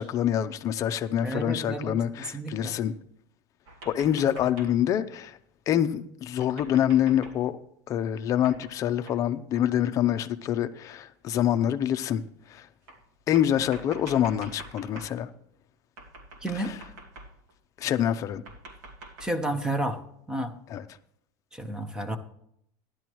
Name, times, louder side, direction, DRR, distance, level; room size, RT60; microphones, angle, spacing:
voice 1, 0.0-2.9 3.9-5.4 5.7-7.6 7.9-12.2 12.5-12.7 13.3-15.3 16.5-16.7 17.8-18.4 20.7-20.8, left 10 dB, 35° left, 0.7 m, -26 dB
voice 2, 1.2-2.7 16.4-16.7 19.2-20.0 20.3-20.5 21.5-22.2, right 1 dB, 5° right, 1.0 m, -31 dB
sound 1, 3.7-4.9 6.4-7.4 8.4-8.8 9.1-9.2 9.5-9.7 10.5-10.6 11.6-11.7 12.9-15.2 16.0-17.5 18.3-19.4, right 2 dB, 70° right, 2.3 m, -46 dB
15.5 x 11.5 x 3.1 m
supercardioid pair, 155°, 10 cm